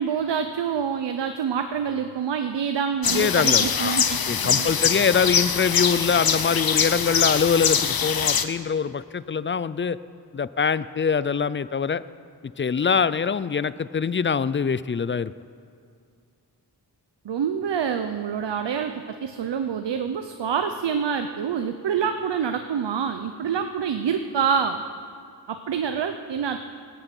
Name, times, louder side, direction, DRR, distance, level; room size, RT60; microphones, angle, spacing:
voice 1, 0.0-4.2 4.4-4.7 17.2-24.8 25.5-26.6, right 7 dB, 80° right, 7 dB, 0.7 m, -26 dB
sound 1, 3.0-8.4, left 7 dB, 55° left, 0.8 m, -23 dB
voice 2, 3.1-4.0 4.3-10.0 10.3-12.0 12.6-15.3, left 6 dB, 30° left, 17 dB, 0.4 m, -24 dB
18.0 x 7.9 x 8.2 m, 2.3 s
wide cardioid pair, 95°, 42 cm